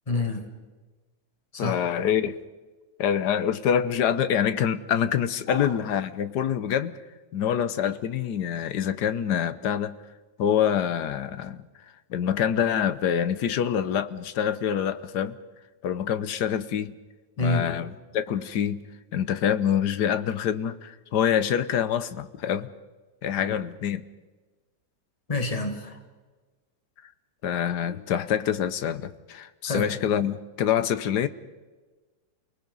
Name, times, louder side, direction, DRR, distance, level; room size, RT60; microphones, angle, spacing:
voice 1, 0.1-0.5 1.5-1.8 5.5-5.7 7.4-7.6 17.4-17.7 25.3-26.0 29.7-29.9, left 2 dB, 20° left, 5 dB, 2.1 m, -27 dB
voice 2, 1.6-2.4 3.0-7.0 7.3-9.9 10.4-11.7 12.1-15.4 15.8-16.9 17.4-18.8 19.1-22.7 23.2-24.0 27.4-31.3, left 9 dB, 70° left, 14 dB, 1.4 m, -26 dB
29.0 x 19.5 x 5.5 m, 1.3 s
omnidirectional pair, 2.0 m